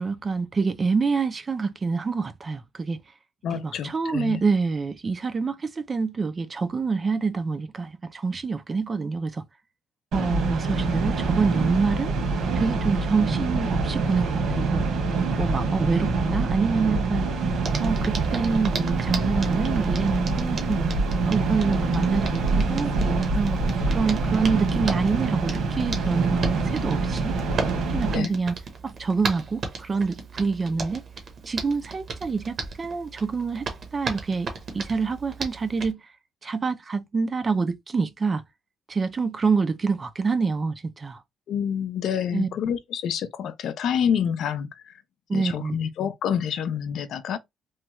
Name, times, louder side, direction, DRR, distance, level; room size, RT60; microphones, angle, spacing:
voice 1, 0.0-3.0 3.5-9.4 10.1-12.1 12.6-14.8 15.4-17.3 17.8-20.9 21.3-23.6 23.9-27.3 27.9-28.6 28.8-31.0 31.5-34.5 34.7-36.0 36.4-38.4 38.9-41.2 42.3-42.5 45.3-45.8, right 4 dB, 25° right, 0.4 m, -26 dB
voice 2, 3.4-4.4 28.1-28.3 41.5-44.9 45.3-47.4, left 8 dB, 65° left, 0.4 m, -27 dB
sound 1, 10.1-28.2, right 3 dB, 70° right, 1.3 m, -25 dB
Hands, 17.6-35.9, right 4 dB, 45° right, 0.8 m, -36 dB
3.1 x 2.3 x 2.8 m
cardioid pair, 150°, 0 cm